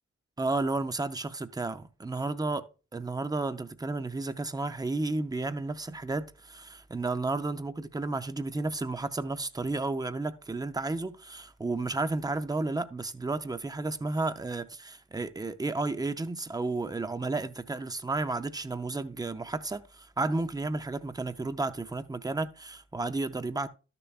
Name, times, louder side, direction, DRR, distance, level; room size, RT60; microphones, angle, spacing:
voice 1, 0.4-2.6 2.9-23.7, right 3 dB, 15° right, 0.5 m, -32 dB
13.0 x 6.8 x 2.4 m
wide cardioid pair, 165°, 30 cm